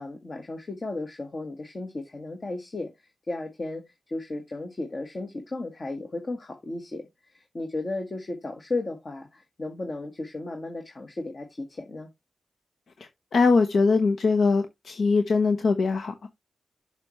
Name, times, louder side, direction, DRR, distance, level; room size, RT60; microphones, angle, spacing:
voice 1, 0.0-12.1, left 2 dB, 45° left, 1.5 m, -35 dB
voice 2, 13.3-16.3, left 4 dB, 75° left, 0.9 m, -22 dB
6.8 x 6.0 x 3.1 m
cardioid pair, 65°, 0 cm